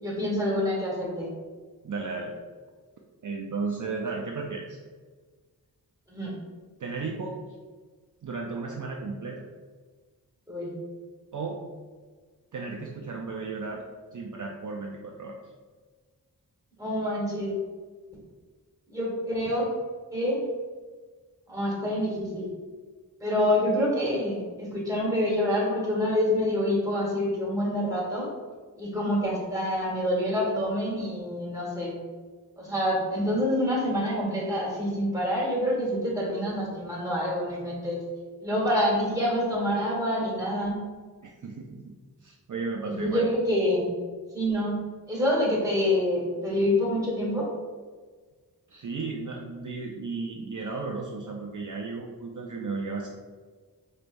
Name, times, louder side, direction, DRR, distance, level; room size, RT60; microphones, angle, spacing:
voice 1, 0.0-1.3 6.1-6.4 10.5-10.7 16.8-17.5 18.9-19.8 20.1-20.5 21.5-22.5 23.2-28.3 28.7-32.0 32.6-38.0 38.4-40.8 42.9-43.9 44.3-44.8 45.1-47.5, left 1 dB, 10° right, -5 dB, 1.3 m, -27 dB
voice 2, 1.8-2.4 3.2-4.8 6.8-7.4 8.2-9.4 11.3-11.6 12.5-13.8 14.1-15.3 19.5-19.6 41.2-41.9 42.2-43.3 48.7-53.1, right 4 dB, 55° right, -1 dB, 0.5 m, -34 dB
4.4 x 3.3 x 2.5 m, 1.4 s
wide cardioid pair, 75°, 38 cm